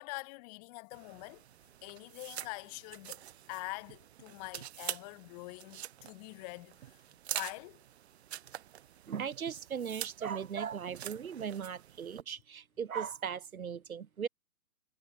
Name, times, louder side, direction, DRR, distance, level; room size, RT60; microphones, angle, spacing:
voice 1, 0.0-1.4 1.8-7.0 7.3-7.8, left 28 dB, 25° left, 3.9 m, -45 dB
sound 1, 0.9-12.2, right 11 dB, 40° right, 5.5 m, -46 dB
voice 2, 9.1-14.3, right 7 dB, 60° right, 3.0 m, -38 dB
hypercardioid pair, 145°, 47 cm